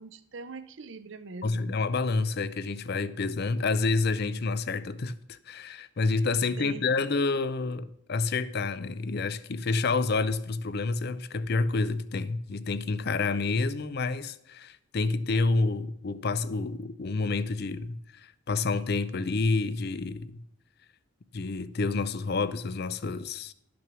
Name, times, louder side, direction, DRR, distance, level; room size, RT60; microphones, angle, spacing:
voice 1, 0.0-1.8 6.6-6.9, right 4 dB, 55° right, 0.6 m, -42 dB
voice 2, 1.4-20.4 21.3-23.5, left 3 dB, 45° left, 0.5 m, -29 dB
12.0 x 6.0 x 6.1 m
head